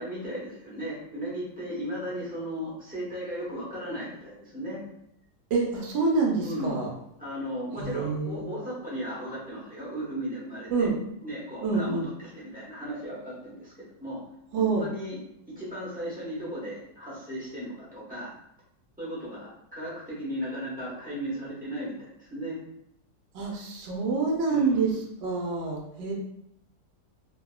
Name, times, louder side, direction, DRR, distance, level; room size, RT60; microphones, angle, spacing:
voice 1, 0.0-4.8 6.4-6.8 7.2-10.9 11.2-13.7 14.0-14.2 14.5-15.2 15.5-18.3 19.0-22.6 24.5-25.0, equal, 10° right, -9 dB, 0.4 m, -35 dB
voice 2, 5.5-6.9 7.8-8.5 10.7-10.9 11.6-12.1 14.5-14.9 23.3-24.9 25.2-26.1, right 4 dB, 90° right, -1 dB, 1.4 m, -27 dB
2.7 x 2.7 x 2.2 m, 0.74 s
omnidirectional pair, 2.0 m